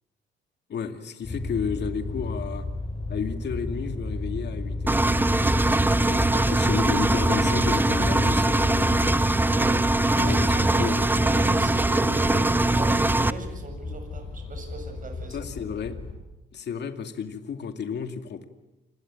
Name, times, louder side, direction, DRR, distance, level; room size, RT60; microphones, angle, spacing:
voice 1, 0.7-2.7 3.1-5.0 6.0-9.3 10.1-11.1 15.3-16.0 16.5-18.5, left 6 dB, 60° left, 7 dB, 2.3 m, -32 dB
sound 1, 1.2-16.1, left 2 dB, 30° left, 6.7 m, -34 dB
Engine, 4.9-13.3, right 2 dB, 10° right, 0.9 m, -22 dB
voice 2, 9.5-10.8 11.2-15.5, right 2 dB, 40° right, 5 dB, 7.7 m, -38 dB
27.5 x 21.5 x 8.8 m, 0.98 s
cardioid pair, 90°, 20 cm